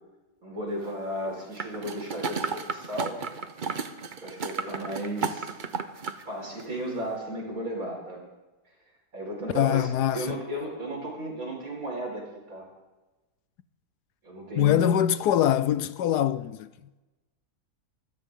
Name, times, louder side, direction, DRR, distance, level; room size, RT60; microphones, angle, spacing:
voice 1, 0.4-3.2 4.2-5.5 6.3-8.3 9.1-12.2 12.5-12.7 14.2-14.9, right 1 dB, 55° right, 5.2 m, -34 dB
sound 1, 1.6-6.2 6.6-6.7, right 5 dB, 40° right, 0.8 m, -33 dB
voice 2, 9.5-10.4 14.6-16.7, left 10 dB, 80° left, 1.2 m, -23 dB
24.5 x 14.0 x 3.7 m
omnidirectional pair, 1.7 m